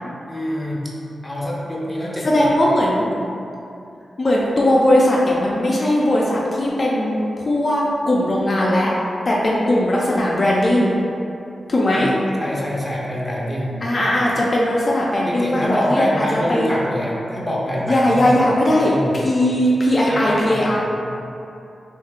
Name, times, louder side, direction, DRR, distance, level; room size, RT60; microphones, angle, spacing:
voice 1, 0.3-0.8 1.2-2.3 11.9-12.0 12.4-13.8 15.3-18.3 18.9-19.1 20.1-20.8, equal, 5° left, -5 dB, 0.8 m, -25 dB
voice 2, 2.2-3.1 4.2-8.9 9.3-10.9 11.7-12.1 13.8-16.2 16.5-16.7 17.9-21.0, left 1 dB, 45° left, -4 dB, 0.5 m, -18 dB
3.2 x 2.7 x 3.6 m, 2.7 s
cardioid pair, 60°, 0 cm